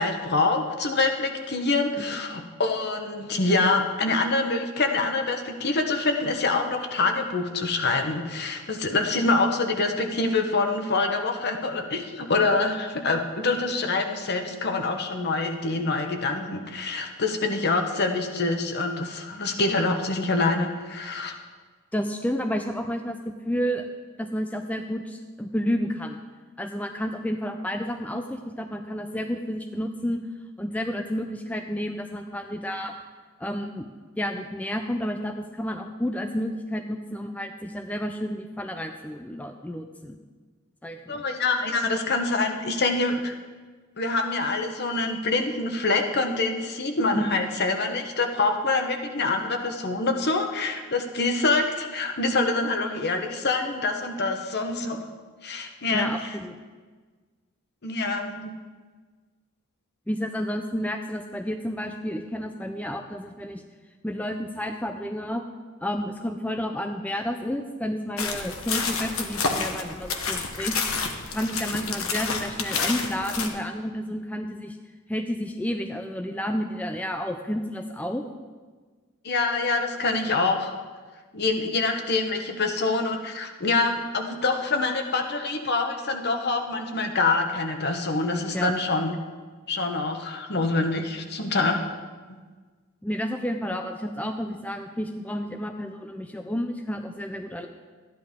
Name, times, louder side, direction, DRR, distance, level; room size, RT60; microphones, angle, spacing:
voice 1, 0.0-21.3 41.1-43.3 44.0-55.0 55.4-56.3 57.8-58.5 68.7-68.8 79.2-80.7 81.3-89.2 89.7-91.8, left 3 dB, 50° left, 5 dB, 1.0 m, -25 dB
voice 2, 21.9-23.8 24.2-26.2 26.6-30.2 30.6-32.9 33.4-33.9 34.2-40.2 40.8-41.2 47.1-47.4 55.9-56.5 60.1-63.6 64.0-65.4 65.8-70.8 71.3-74.8 75.1-78.3 88.5-88.7 93.0-97.7, equal, 5° left, 4 dB, 0.4 m, -30 dB
sound 1, 68.2-73.5, left 5 dB, 75° left, 1.1 m, -29 dB
13.5 x 10.5 x 3.7 m, 1.4 s
head